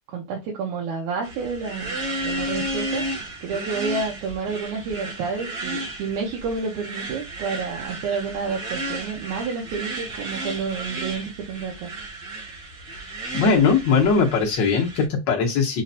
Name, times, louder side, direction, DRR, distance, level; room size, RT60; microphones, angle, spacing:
voice 1, 0.1-2.0 2.2-3.1 3.4-11.9, right 5 dB, 85° right, 2.3 m, -29 dB
sound 1, 1.2-15.1, right 1 dB, 60° right, 1.2 m, -33 dB
voice 2, 13.3-15.8, left 5 dB, 85° left, 1.0 m, -20 dB
5.7 x 2.1 x 2.6 m
omnidirectional pair, 3.3 m